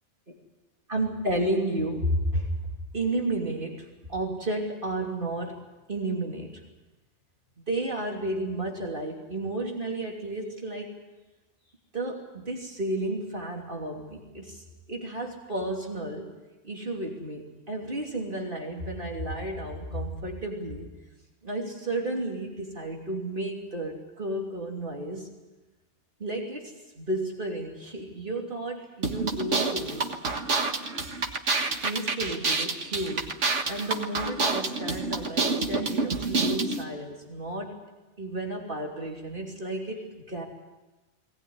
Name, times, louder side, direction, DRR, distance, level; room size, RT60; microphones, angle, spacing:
voice 1, 0.9-2.5 2.9-5.6 5.9-6.5 7.7-11.0 11.9-14.6 14.9-16.3 16.6-20.9 21.4-25.3 26.2-30.0 31.8-33.3 33.7-37.8 38.2-40.4, right 1 dB, 45° right, 0 dB, 3.2 m, -32 dB
sound 1, 29.0-36.8, right 3 dB, 85° right, 2.0 m, -28 dB
21.0 x 19.0 x 9.6 m, 1.1 s
omnidirectional pair, 1.2 m